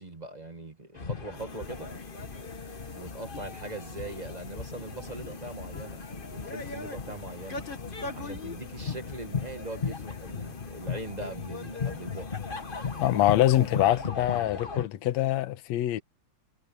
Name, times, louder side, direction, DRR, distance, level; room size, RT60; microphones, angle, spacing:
voice 1, 0.0-1.9 2.9-6.0 6.3-7.6 8.1-12.3, right 2 dB, 20° right, 1.5 m, -41 dB
sound 1, 0.9-14.8, left 5 dB, 35° left, 0.8 m, -37 dB
sound 2, 1.3-14.2, left 4 dB, 50° left, 2.8 m, -49 dB
voice 2, 13.0-16.0, left 14 dB, 75° left, 2.2 m, -24 dB
omnidirectional pair, 3.3 m